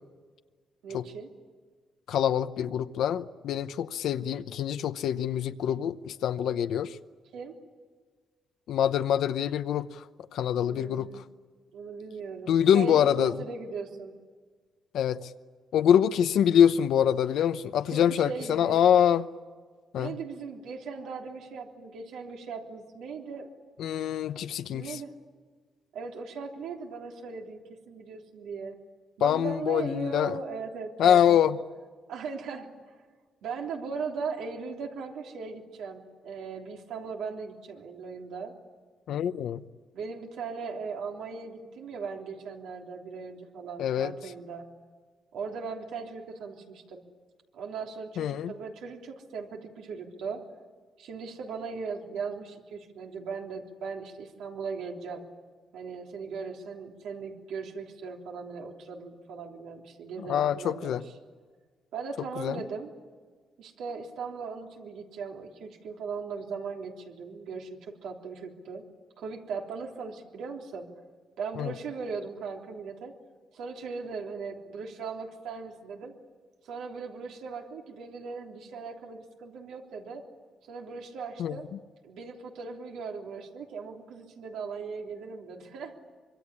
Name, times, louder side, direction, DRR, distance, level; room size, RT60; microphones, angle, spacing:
voice 1, 0.8-1.3 7.3-7.5 10.6-11.3 11.7-14.1 17.9-18.8 19.9-23.5 24.7-25.1 25.9-28.7 29.2-31.4 32.1-32.7 33.4-38.5 39.9-44.7 45.3-47.0 47.5-50.4 51.0-55.2 55.7-61.1 61.9-62.9 63.6-68.8 69.2-70.9 71.4-73.1 73.5-76.1 76.6-80.2 80.7-81.7 82.0-85.9, right 5 dB, 90° right, 3.4 m, -38 dB
voice 2, 2.1-7.0 8.7-10.1 10.3-11.2 12.5-13.4 14.9-15.3 15.7-19.3 19.9-20.2 23.8-25.0 29.2-30.4 31.0-31.6 39.1-39.6 43.8-44.1 48.2-48.5 60.2-61.0 62.4-62.6 71.6-71.7 81.4-81.6, left 9 dB, 75° left, 0.8 m, -25 dB
25.5 x 24.0 x 9.9 m
cardioid pair, 160°, 0 cm